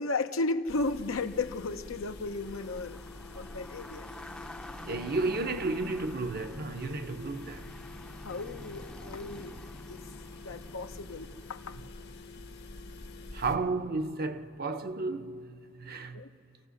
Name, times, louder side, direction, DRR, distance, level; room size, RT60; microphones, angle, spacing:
voice 1, 0.0-3.0 3.3-4.1 8.2-9.6 9.9-11.8 16.1-16.3, left 3 dB, 80° left, 0.8 m, -34 dB
sound 1, 0.7-13.6, left 2 dB, 55° left, 1.1 m, -46 dB
sound 2, 1.4-11.8, left 1 dB, 5° left, 0.6 m, -49 dB
voice 2, 4.8-7.8 13.3-16.2, right 3 dB, 50° right, 0.7 m, -33 dB
28.0 x 14.5 x 6.4 m
head